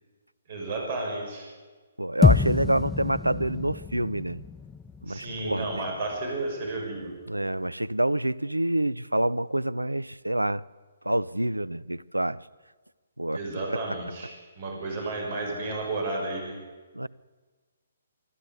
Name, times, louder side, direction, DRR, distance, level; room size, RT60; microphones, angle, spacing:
voice 1, 0.5-1.5 5.1-7.1 13.3-16.6, right 2 dB, 40° right, 1 dB, 6.5 m, -32 dB
voice 2, 2.0-4.4 5.0-5.7 7.3-10.6 11.1-12.4 13.2-13.4 13.7-13.8 16.9-17.1, right 1 dB, 85° right, 21 dB, 0.6 m, -27 dB
sound 1, 2.2-6.6, left 5 dB, 10° left, 0.8 m, -27 dB
24.5 x 12.5 x 9.7 m, 1.4 s
figure-of-eight pair, 130°, 0 cm